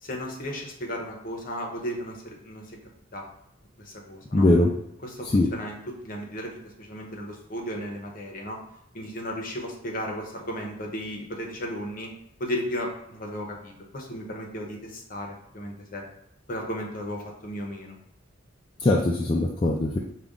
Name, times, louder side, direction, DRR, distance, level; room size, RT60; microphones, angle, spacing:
voice 1, 0.0-2.8 3.1-3.2 3.8-4.5 5.0-8.6 8.9-12.1 12.4-16.0 16.5-18.0, equal, 40° left, 0 dB, 0.8 m, -35 dB
voice 2, 4.3-4.7 5.3-5.5 18.8-20.0, left 2 dB, 25° left, -2 dB, 0.3 m, -21 dB
5.0 x 2.3 x 3.6 m, 0.80 s
head